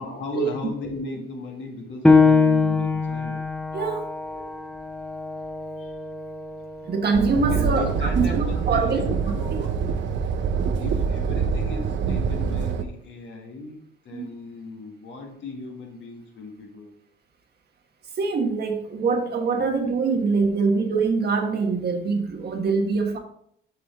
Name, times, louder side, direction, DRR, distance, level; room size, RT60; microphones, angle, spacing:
voice 1, 0.0-3.4 4.3-4.5 5.8-6.0 7.3-9.8 10.8-16.9, left 2 dB, 70° left, 1 dB, 2.0 m, -36 dB
Piano, 2.0-7.2 7.7-7.8 8.4-8.9, left 4 dB, 5° left, 0.8 m, -22 dB
voice 2, 3.7-4.0 6.8-8.3 8.7-9.0 9.5-9.6 14.1-14.3 18.2-23.2, right 4 dB, 55° right, 4 dB, 1.5 m, -24 dB
sound 1, 7.1-12.8, right 6 dB, 70° right, 0.8 m, -25 dB
7.8 x 6.1 x 3.6 m, 0.66 s
cardioid pair, 90°, 20 cm